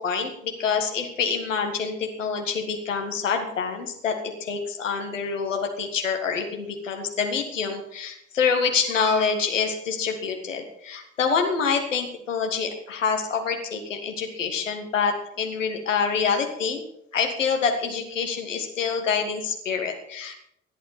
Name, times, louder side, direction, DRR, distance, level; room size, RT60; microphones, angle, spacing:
voice 1, 0.0-16.8 17.1-20.3, left 5 dB, 80° left, 3 dB, 1.8 m, -26 dB
16.5 x 11.5 x 4.3 m, 0.75 s
figure-of-eight pair, 45°, 37 cm